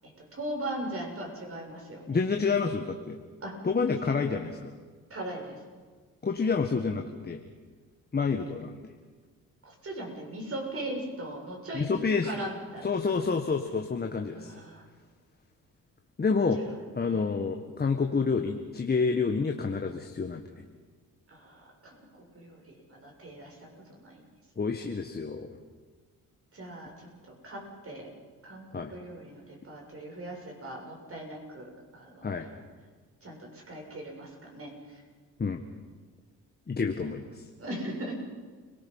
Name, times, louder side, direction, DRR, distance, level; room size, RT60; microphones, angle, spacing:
voice 1, 0.0-2.2 3.4-3.5 4.0-4.1 5.1-5.6 9.6-12.9 14.3-14.8 17.1-17.2 21.3-22.1 22.3-24.2 26.5-27.1 27.4-28.1 28.4-32.5 33.2-35.0 37.6-38.2, right 1 dB, 40° right, 0 dB, 7.0 m, -39 dB
voice 2, 2.1-3.2 3.6-4.7 6.2-7.4 8.1-8.7 11.7-12.3 12.8-14.5 16.2-16.6 16.9-20.4 24.6-25.5 28.7-28.9 32.2-32.5 35.4-35.6 36.7-37.4, left 4 dB, 30° left, 4 dB, 1.6 m, -28 dB
29.5 x 19.0 x 5.7 m, 1.5 s
cardioid pair, 85°, 34 cm